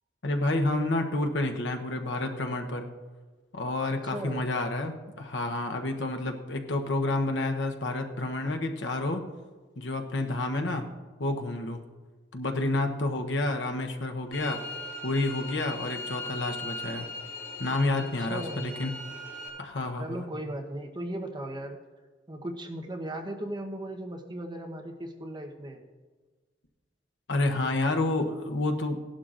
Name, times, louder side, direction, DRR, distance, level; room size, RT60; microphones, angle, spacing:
voice 1, 0.2-2.9 3.5-9.2 9.8-10.9 11.2-11.8 12.3-14.6 15.0-17.1 17.6-18.9 19.6-20.3 27.3-29.0, left 2 dB, 75° left, 4 dB, 0.9 m, -29 dB
voice 2, 3.9-4.5 18.0-18.8 20.0-21.8 22.3-25.8, right 1 dB, 25° right, 2 dB, 1.0 m, -37 dB
sound 1, 14.3-19.5, left 2 dB, 55° left, 4.0 m, -39 dB
17.5 x 11.5 x 2.5 m, 1.4 s
head